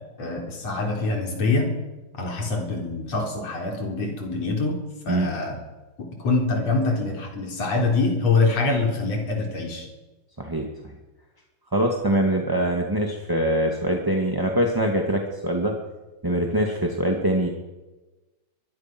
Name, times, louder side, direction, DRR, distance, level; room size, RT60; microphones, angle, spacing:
voice 1, 0.2-1.7 2.2-5.6 6.0-9.9, left 3 dB, 60° left, 2 dB, 4.9 m, -25 dB
voice 2, 10.4-10.9 11.7-15.7 16.2-17.5, right 1 dB, 10° right, 1 dB, 1.5 m, -23 dB
22.5 x 22.5 x 6.2 m, 1.1 s
omnidirectional pair, 3.3 m